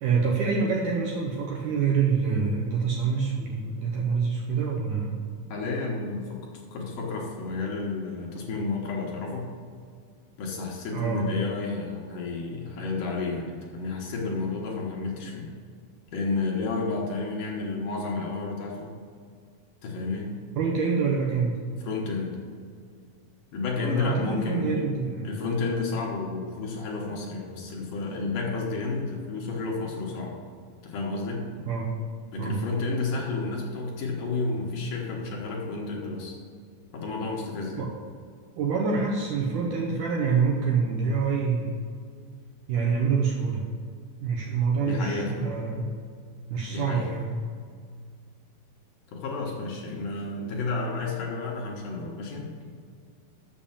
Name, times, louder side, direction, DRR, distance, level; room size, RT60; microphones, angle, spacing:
voice 1, 0.0-5.2 10.9-11.2 20.6-21.6 23.7-25.4 31.7-32.0 32.4-32.6 37.8-37.9 38.6-41.9 42.7-43.6 44.2-46.0 46.5-47.4, right 5 dB, 75° right, -2 dB, 1.9 m, -26 dB
voice 2, 5.5-6.4 6.7-9.5 10.4-15.5 16.1-18.9 19.8-20.4 21.8-22.4 23.5-24.8 25.2-30.4 30.8-31.5 32.3-36.4 36.9-37.9 44.8-45.5 46.7-47.1 49.1-52.7, left 3 dB, 65° left, -2 dB, 2.5 m, -31 dB
7.3 x 6.8 x 7.0 m, 2.1 s
omnidirectional pair, 4.4 m